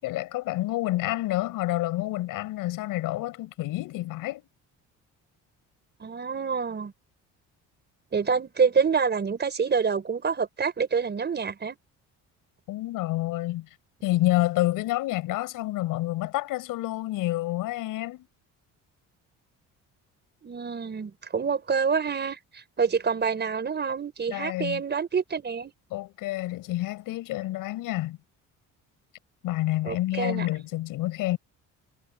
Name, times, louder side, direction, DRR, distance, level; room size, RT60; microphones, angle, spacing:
voice 1, 0.0-4.4 12.7-13.7 14.0-18.3 24.3-24.8 25.9-28.2 29.4-31.4, left 17 dB, 85° left, 5.7 m, -28 dB
voice 2, 6.0-6.9 8.1-11.8 20.4-25.7 29.9-30.5, right 6 dB, 30° right, 4.7 m, -27 dB
cardioid pair, 115°, 32 cm